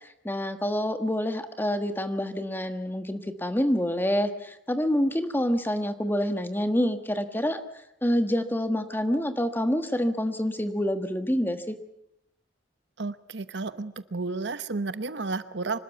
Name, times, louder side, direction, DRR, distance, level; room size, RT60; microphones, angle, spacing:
voice 1, 0.0-7.6 8.0-11.7, equal, 10° left, 9 dB, 1.4 m, -27 dB
voice 2, 13.0-15.8, right 3 dB, 65° right, 14 dB, 0.9 m, -32 dB
25.5 x 13.0 x 9.2 m, 0.82 s
head